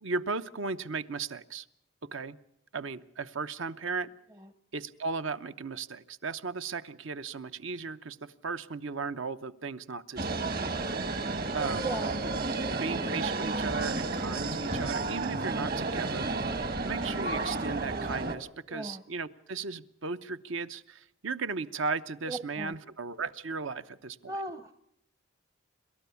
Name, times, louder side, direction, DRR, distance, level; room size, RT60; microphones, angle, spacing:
voice 1, 0.0-1.7 2.1-2.4 2.7-4.1 4.7-10.4 11.5-11.9 12.8-16.3 16.8-24.3, right 4 dB, 70° right, 13 dB, 0.9 m, -36 dB
sound 1, 10.2-18.3, right 3 dB, 45° right, 1.7 m, -32 dB
voice 2, 11.8-12.2 18.7-19.0 22.3-22.8 24.3-24.7, right 1 dB, 15° right, 10 dB, 0.7 m, -37 dB
28.0 x 13.0 x 7.0 m, 0.78 s
head